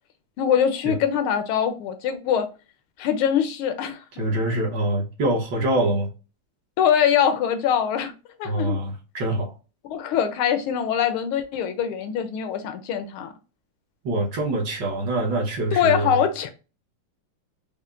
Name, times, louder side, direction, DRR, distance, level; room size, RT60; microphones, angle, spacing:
voice 1, 0.4-2.5 3.0-4.2 6.8-8.1 8.4-8.8 9.9-13.3 15.7-16.5, left 8 dB, 80° left, 1.4 m, -23 dB
voice 2, 4.2-6.1 8.4-9.5 14.0-16.2, right 1 dB, 60° right, 1.5 m, -25 dB
5.4 x 2.1 x 2.4 m
omnidirectional pair, 2.4 m